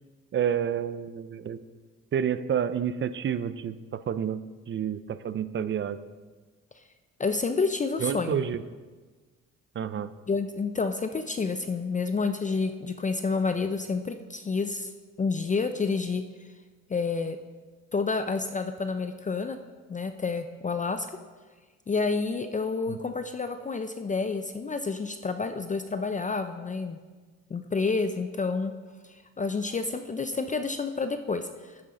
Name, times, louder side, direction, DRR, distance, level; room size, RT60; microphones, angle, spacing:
voice 1, 0.3-1.6 2.1-6.0 8.0-8.6 9.7-10.1 22.9-23.0, right 8 dB, 40° right, 14 dB, 0.5 m, -29 dB
voice 2, 7.2-8.4 10.3-14.9 15.2-16.2 16.9-17.4 17.9-19.6 19.9-21.1 21.9-27.0 27.5-28.7 29.4-31.7, left 4 dB, 25° left, 8 dB, 0.5 m, -29 dB
10.0 x 9.1 x 3.8 m, 1.4 s
cardioid pair, 90°, 30 cm